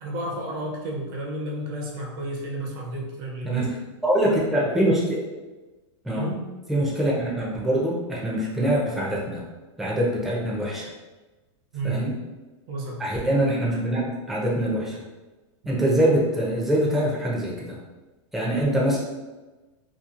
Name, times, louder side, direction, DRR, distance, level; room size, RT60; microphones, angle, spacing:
voice 1, 0.0-3.8 6.1-6.4 11.7-12.1 12.7-13.1, right 1 dB, 45° right, -1 dB, 0.6 m, -31 dB
voice 2, 4.0-5.2 6.0-6.2 6.7-9.4 9.8-10.9 11.8-12.1 13.0-15.0 15.6-17.8 18.3-19.0, right 1 dB, ahead, -6 dB, 0.5 m, -24 dB
2.9 x 2.3 x 2.4 m, 1.2 s
supercardioid pair, 140°, 16 cm